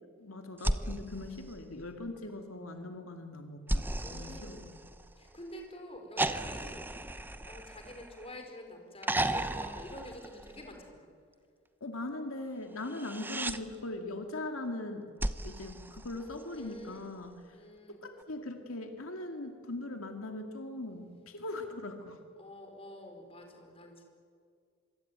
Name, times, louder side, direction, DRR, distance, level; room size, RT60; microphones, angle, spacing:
voice 1, 0.2-4.7 11.8-15.1 15.4-17.6 17.9-22.2, left 2 dB, 85° left, 5 dB, 2.3 m, -40 dB
sound 1, 0.6-2.2 3.7-5.4 6.2-8.4 9.0-10.9 12.8-13.6 15.2-16.7 18.2-18.3, right 1 dB, 10° right, 0.9 m, -35 dB
voice 2, 4.0-4.7 5.2-11.1 16.5-17.1 17.5-18.0 22.4-24.0, left 1 dB, 30° left, 4 dB, 4.6 m, -48 dB
26.0 x 24.0 x 9.4 m, 2.1 s
head